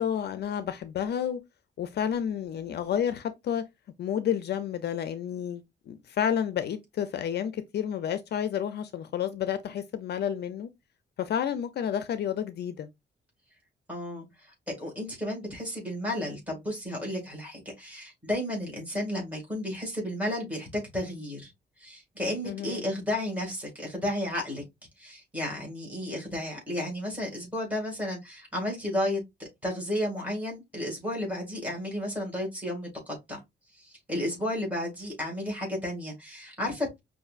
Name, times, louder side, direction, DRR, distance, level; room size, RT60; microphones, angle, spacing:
voice 1, 0.0-1.4 1.8-3.6 4.0-10.7 11.2-12.9 22.4-22.8, left 9 dB, 60° left, 0.5 m, -30 dB
voice 2, 13.9-14.3 14.7-21.5 21.8-24.6 25.0-33.4 33.8-37.0, left 1 dB, 5° right, 2.0 m, -33 dB
5.5 x 2.6 x 2.4 m
wide cardioid pair, 145°, 19 cm